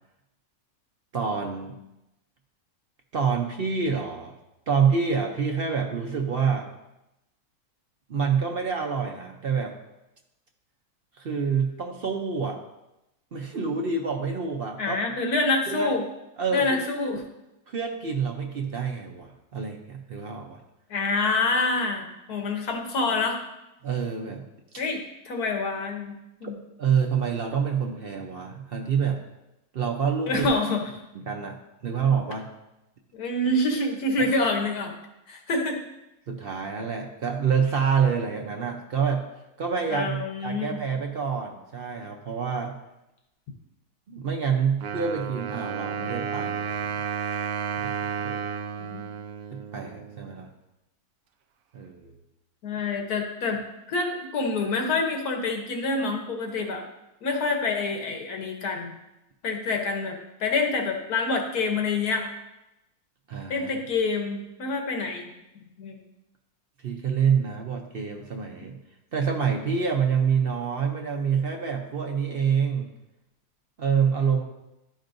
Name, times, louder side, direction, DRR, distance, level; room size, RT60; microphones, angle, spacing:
voice 1, 1.1-1.8 3.1-4.3 4.7-6.7 8.1-9.7 11.2-12.6 13.3-15.0 15.7-15.9 16.4-16.8 17.7-20.6 23.8-24.4 26.8-29.2 29.7-30.5 31.1-31.6 31.8-32.5 36.3-39.2 39.6-42.8 44.1-46.9 47.8-48.4 49.5-50.5 51.7-52.2 63.3-63.7 66.8-68.8 69.1-72.9 73.8-74.4, right 6 dB, 50° right, 2 dB, 0.7 m, -27 dB
voice 2, 14.8-16.0 16.5-17.2 20.9-23.4 24.8-26.1 26.4-26.6 30.3-30.9 33.1-34.9 35.3-35.8 39.9-40.8 48.8-49.0 52.6-53.6 53.9-56.8 57.2-58.9 59.4-62.3 63.5-66.0, left 3 dB, 80° left, 3 dB, 1.5 m, -27 dB
Wind instrument woodwind instrument, 44.8-50.4, right 7 dB, 75° right, 1.0 m, -32 dB
12.0 x 5.2 x 2.6 m, 0.92 s
omnidirectional pair, 1.6 m